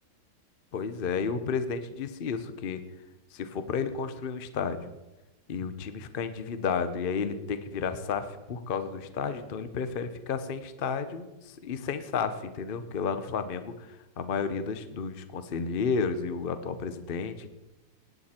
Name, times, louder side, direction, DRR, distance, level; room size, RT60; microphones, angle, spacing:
voice 1, 0.7-2.8 3.3-4.9 5.5-17.5, left 5 dB, 75° left, 11 dB, 0.5 m, -32 dB
19.5 x 9.3 x 4.3 m, 1.1 s
omnidirectional pair, 2.2 m